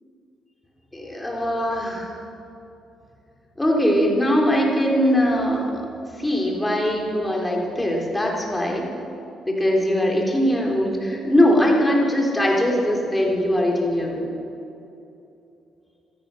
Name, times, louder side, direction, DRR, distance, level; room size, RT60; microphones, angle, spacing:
voice 1, 0.9-2.1 3.6-5.8 6.2-8.8 9.5-14.3, equal, 10° left, -1 dB, 3.8 m, -21 dB
16.5 x 13.5 x 6.5 m, 2.8 s
cardioid pair, 90°, 0 cm